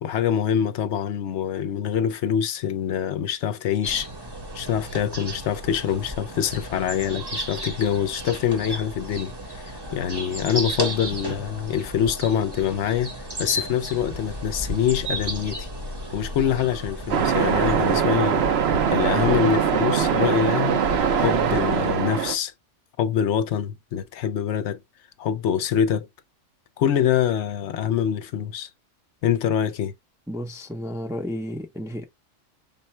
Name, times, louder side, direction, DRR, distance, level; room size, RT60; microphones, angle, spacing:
voice 1, 0.0-4.1 4.5-15.7 16.1-18.4 18.9-20.8 21.1-22.5 23.0-24.8 25.2-26.1 26.8-28.7 29.2-29.9, left 9 dB, 70° left, 0.8 m, -25 dB
sound 1, 3.8-18.0, right 1 dB, 20° right, 0.9 m, -34 dB
Waves surf, 17.1-22.3, right 7 dB, 60° right, 0.9 m, -22 dB
voice 2, 30.3-32.0, equal, 5° right, 0.4 m, -32 dB
5.5 x 2.2 x 4.2 m
omnidirectional pair, 1.3 m